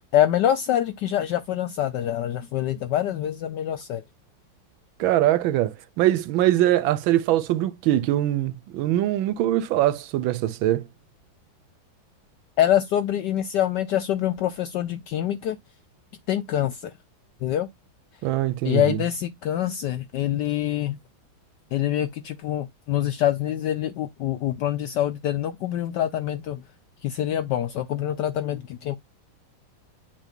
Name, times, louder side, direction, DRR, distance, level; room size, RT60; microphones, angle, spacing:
voice 1, 0.1-4.0 12.6-15.6 16.3-16.9 17.4-17.7 18.6-21.0 21.7-26.6 27.0-29.0, left 11 dB, 80° left, 1.0 m, -25 dB
voice 2, 5.0-10.8 18.2-19.0, right 14 dB, 75° right, 1.2 m, -22 dB
7.3 x 2.6 x 5.1 m
omnidirectional pair, 2.4 m